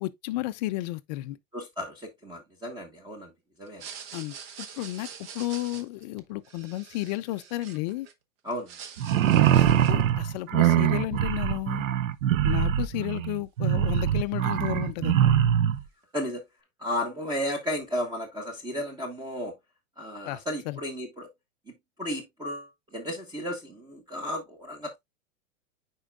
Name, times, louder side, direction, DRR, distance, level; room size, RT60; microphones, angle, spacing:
voice 1, 0.0-1.4 4.1-8.1 9.5-11.9 12.4-15.3 20.2-20.8, left 17 dB, 35° left, 0.4 m, -33 dB
voice 2, 1.5-3.3 3.6-3.8 8.4-8.7 16.1-16.4 16.8-19.5 20.0-21.3 22.0-25.0, left 1 dB, 10° right, 1.2 m, -33 dB
sound 1, 3.7-8.1 8.5-10.1, right 7 dB, 50° right, 1.1 m, -45 dB
sound 2, 9.0-15.8, right 10 dB, 80° right, 0.7 m, -23 dB
9.7 x 4.5 x 2.3 m
supercardioid pair, 145°, 38 cm